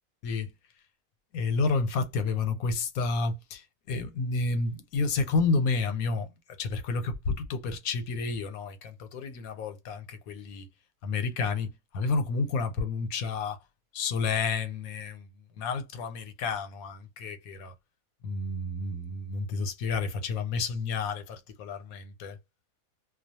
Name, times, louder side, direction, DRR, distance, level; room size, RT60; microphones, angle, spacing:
voice 1, 1.3-6.3 6.6-10.7 11.0-13.6 13.9-15.3 15.6-17.7 18.2-22.4, left 4 dB, 90° left, 1.1 m, -30 dB
2.3 x 2.2 x 2.7 m
omnidirectional pair, 1.5 m